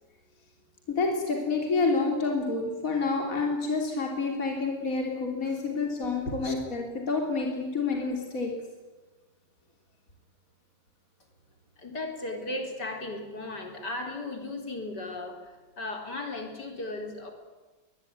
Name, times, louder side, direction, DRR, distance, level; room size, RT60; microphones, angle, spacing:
voice 1, 0.9-8.5, left 3 dB, 45° left, 1 dB, 3.7 m, -28 dB
voice 2, 11.8-17.3, left 2 dB, 60° left, 3 dB, 4.5 m, -36 dB
23.0 x 21.0 x 9.6 m, 1.2 s
omnidirectional pair, 2.0 m